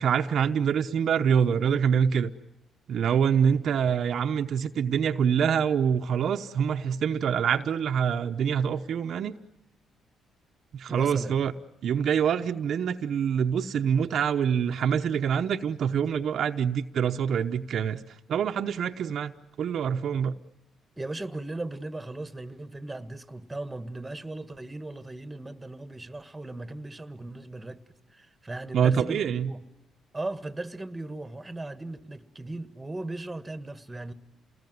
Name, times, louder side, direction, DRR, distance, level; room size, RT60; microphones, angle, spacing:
voice 1, 0.0-2.3 2.9-9.3 10.7-11.5 11.8-18.0 18.3-19.3 19.6-20.3 28.7-29.5, right 7 dB, 65° right, 0.9 m, -25 dB
voice 2, 10.9-11.4 21.0-27.8 28.1-29.6 30.1-34.1, right 2 dB, 15° right, 1.6 m, -37 dB
28.5 x 20.0 x 9.5 m
cardioid pair, 90°, 0 cm